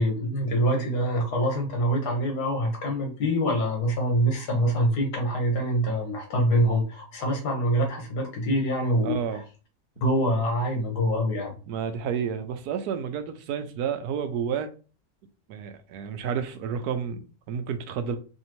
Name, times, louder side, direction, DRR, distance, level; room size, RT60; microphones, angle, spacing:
voice 1, 0.0-9.4 10.0-11.6, equal, 85° left, 1.8 m, -25 dB
voice 2, 9.0-9.4 11.7-14.7 15.5-18.2, right 7 dB, 80° right, 1.1 m, -30 dB
4.3 x 2.7 x 3.0 m
omnidirectional pair, 1.7 m